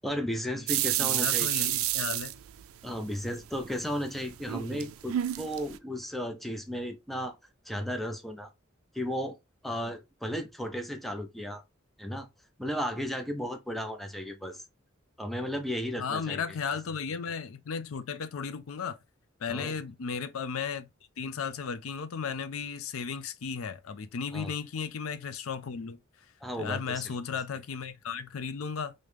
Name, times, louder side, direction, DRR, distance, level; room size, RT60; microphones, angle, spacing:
voice 1, 0.0-1.8 2.8-7.4 7.6-8.5 8.9-9.4 9.6-11.6 12.0-12.3 12.6-14.6 15.2-16.4 19.5-19.7 24.3-24.5 26.4-27.1, equal, ahead, 0.5 m, -34 dB
sound 1, 0.7-3.1 3.5-5.8, right 14 dB, 80° right, 0.3 m, -29 dB
voice 2, 1.0-2.4 16.0-19.0 19.4-20.9 21.2-26.0 26.6-28.9, left 6 dB, 80° left, 0.5 m, -35 dB
3.1 x 2.7 x 3.2 m
head